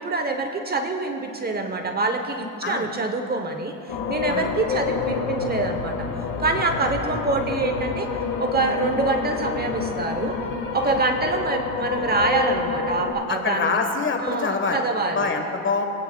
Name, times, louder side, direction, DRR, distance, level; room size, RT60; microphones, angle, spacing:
voice 1, 0.0-6.1 6.4-8.1 8.4-10.4 10.7-13.8 14.2-15.3, right 3 dB, 25° right, 5 dB, 0.9 m, -25 dB
sound 1, 3.9-13.1, left 5 dB, 85° left, 1.7 m, -28 dB
voice 2, 13.3-14.8 15.1-15.8, left 4 dB, 30° left, 4 dB, 1.3 m, -25 dB
22.0 x 9.5 x 2.3 m, 2.7 s
supercardioid pair, 95°, 38 cm